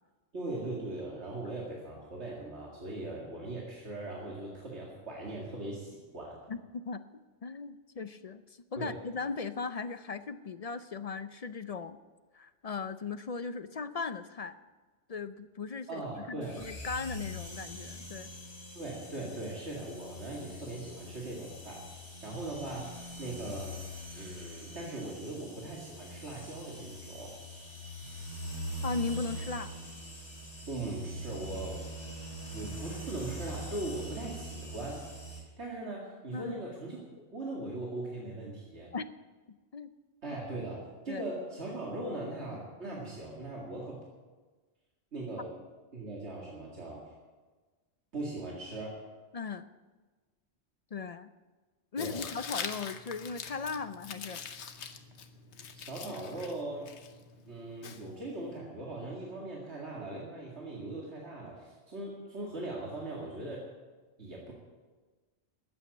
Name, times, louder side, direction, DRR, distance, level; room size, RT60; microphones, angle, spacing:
voice 1, 0.3-6.4 8.8-9.0 15.9-16.6 18.7-21.8 22.2-23.7 24.1-27.4 30.7-31.8 32.5-35.0 35.4-37.0 37.3-38.9 40.2-44.0 45.1-45.5 45.9-47.1 48.1-49.0 52.0-52.2 55.7-56.9 57.5-63.7 64.2-64.5, right 2 dB, 80° right, -3 dB, 2.5 m, -40 dB
voice 2, 6.5-7.0 7.4-8.4 8.7-12.0 12.3-14.6 15.1-16.0 16.3-18.3 28.8-29.7 36.3-36.5 38.9-39.1 39.5-39.9 40.3-40.4 41.1-41.2 49.3-49.7 50.9-51.3 51.9-54.4, left 4 dB, 50° left, 12 dB, 0.5 m, -38 dB
sound 1, 16.4-35.4, right 1 dB, 65° left, 3.9 m, -43 dB
Tearing, 52.0-58.6, left 6 dB, 85° left, 1.2 m, -44 dB
13.5 x 9.2 x 8.3 m, 1.3 s
omnidirectional pair, 1.1 m